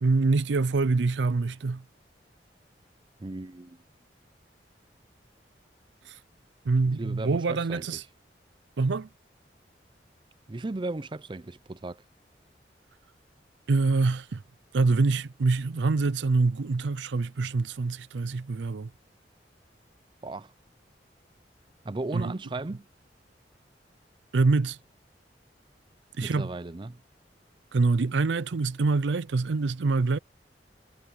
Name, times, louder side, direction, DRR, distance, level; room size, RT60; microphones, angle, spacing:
voice 1, 0.0-1.8 6.0-6.2 6.6-8.0 8.8-9.1 13.7-14.4 14.7-18.9 22.1-22.4 24.3-24.8 26.2-26.5 27.7-30.2, right 3 dB, 90° right, 0.5 m, -25 dB
voice 2, 3.2-3.8 7.0-7.9 10.5-12.0 20.2-20.5 21.8-22.8 26.2-27.0, right 2 dB, 25° right, 0.5 m, -36 dB
head